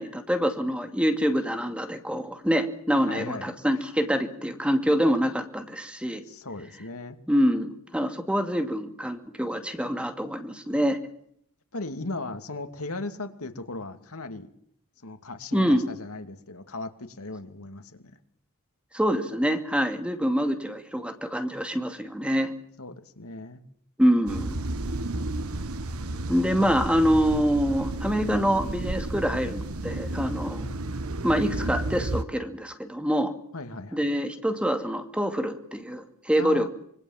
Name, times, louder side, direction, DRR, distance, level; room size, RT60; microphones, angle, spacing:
voice 1, 0.0-6.2 7.3-11.0 15.5-15.9 18.9-22.5 24.0-24.5 26.3-30.7 31.2-33.3 33.9-36.7, equal, 5° right, 2.4 m, -25 dB
voice 2, 3.1-3.9 6.2-7.2 11.7-14.5 15.0-18.2 22.8-23.6 33.5-34.0 36.4-36.7, left 2 dB, 80° left, 2.6 m, -37 dB
sound 1, 24.3-32.2, right 2 dB, 85° right, 1.5 m, -32 dB
26.0 x 23.5 x 7.4 m
head